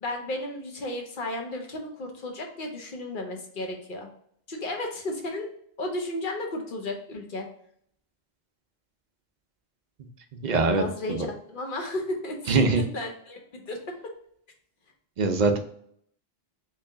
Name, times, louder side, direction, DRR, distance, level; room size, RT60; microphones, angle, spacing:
voice 1, 0.0-4.1 4.5-5.5 5.8-7.5 10.7-14.1, left 1 dB, 55° left, 2 dB, 0.9 m, -34 dB
voice 2, 10.4-11.3 12.5-12.8 15.2-15.6, right 3 dB, 55° right, 5 dB, 0.6 m, -23 dB
3.2 x 2.8 x 3.4 m, 0.65 s
omnidirectional pair, 1.0 m